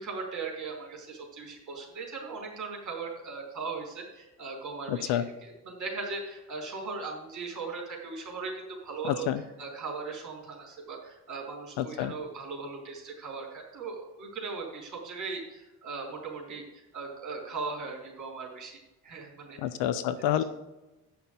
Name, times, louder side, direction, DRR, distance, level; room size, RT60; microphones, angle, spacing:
voice 1, 0.0-16.6 16.9-19.6 20.2-20.4, right 4 dB, 35° right, -1 dB, 3.5 m, -38 dB
voice 2, 4.9-5.2 9.0-9.4 11.8-12.1 19.6-20.4, left 11 dB, 55° left, 12 dB, 0.7 m, -28 dB
8.5 x 5.9 x 6.9 m, 1.0 s
figure-of-eight pair, 45°, 50 cm